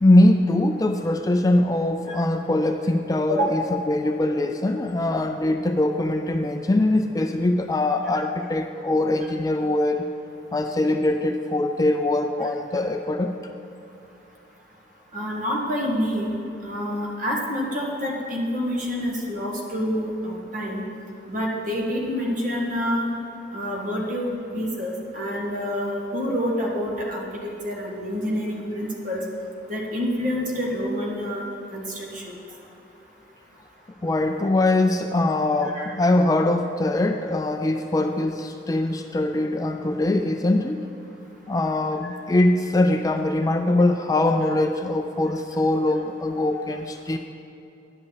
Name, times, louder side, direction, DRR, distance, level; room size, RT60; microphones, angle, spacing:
voice 1, 0.0-10.1 10.5-13.3 23.9-24.0 34.0-40.8 41.5-47.2, left 1 dB, 20° left, 6 dB, 0.3 m, -22 dB
voice 2, 15.1-20.8 21.3-23.1 23.5-29.2 29.7-31.4 31.7-32.4 35.6-35.8, equal, 45° right, -2 dB, 1.8 m, -27 dB
10.5 x 5.5 x 8.4 m, 2.9 s
head